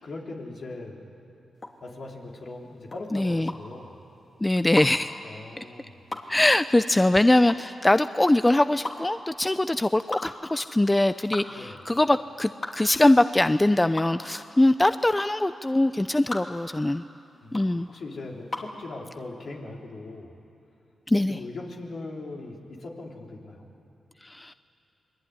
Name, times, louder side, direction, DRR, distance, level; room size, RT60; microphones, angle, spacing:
voice 1, 0.0-1.1 1.8-4.0 5.2-6.1 11.5-11.8 17.4-20.3 21.3-23.7, left 2 dB, 65° left, -1 dB, 3.8 m, -40 dB
sound 1, 1.6-18.8, left 2 dB, 40° left, 2.9 m, -39 dB
voice 2, 3.1-3.5 4.4-5.1 6.3-17.0 17.5-17.9 21.1-21.4 24.2-24.5, left 1 dB, 20° left, 12 dB, 0.6 m, -22 dB
26.5 x 21.5 x 9.7 m, 2.8 s
cardioid pair, 55°, 0 cm